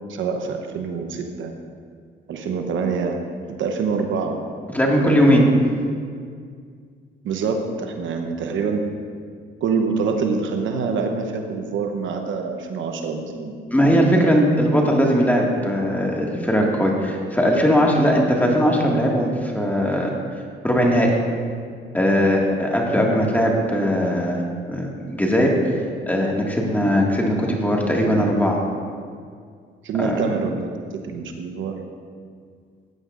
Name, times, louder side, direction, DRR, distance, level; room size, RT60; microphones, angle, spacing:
voice 1, 0.1-1.5 2.3-3.2 3.5-4.4 5.0-5.5 7.2-8.8 9.6-14.1 29.8-31.8, right 5 dB, 75° right, 4 dB, 0.9 m, -26 dB
voice 2, 4.7-5.4 13.7-20.1 20.6-21.1 21.9-24.4 24.7-25.5 26.1-28.6 30.0-30.2, equal, 10° left, -2 dB, 1.9 m, -19 dB
14.5 x 9.7 x 2.5 m, 2.1 s
cardioid pair, 90°, 20 cm